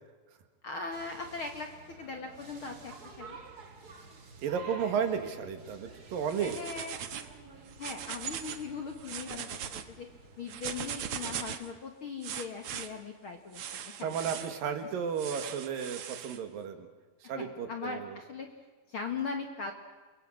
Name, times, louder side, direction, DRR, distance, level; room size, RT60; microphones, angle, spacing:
voice 1, 0.6-1.7 2.0-3.4 6.4-7.0 7.8-10.1 10.4-14.1 17.2-18.5 18.9-19.7, left 4 dB, 55° left, 5 dB, 1.4 m, -39 dB
sound 1, 0.9-11.4, right 4 dB, 30° right, 2.0 m, -51 dB
voice 2, 4.4-6.6 14.0-16.9 17.3-18.2, right 7 dB, 70° right, 8 dB, 3.3 m, -33 dB
sound 2, 6.3-7.3 7.7-8.6 9.0-9.8 10.5-11.7 12.2-12.9 13.5-14.5 15.2-16.4, right 9 dB, 90° right, 1.2 m, -39 dB
29.0 x 22.5 x 6.4 m, 1.4 s
omnidirectional pair, 4.4 m